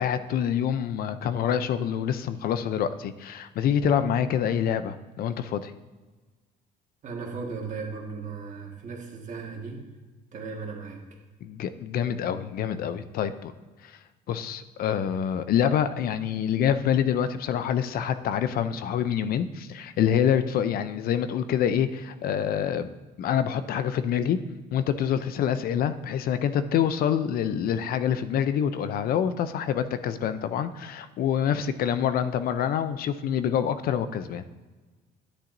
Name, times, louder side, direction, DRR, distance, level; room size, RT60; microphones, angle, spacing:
voice 1, 0.0-5.7 11.4-13.5 14.3-22.9 23.2-24.4 24.7-34.7, left 9 dB, 60° left, 12 dB, 0.5 m, -26 dB
voice 2, 7.0-9.9 10.3-11.0 13.1-13.3, right 4 dB, 50° right, 1 dB, 1.6 m, -36 dB
10.0 x 8.8 x 2.6 m, 1.3 s
cardioid pair, 110°, 17 cm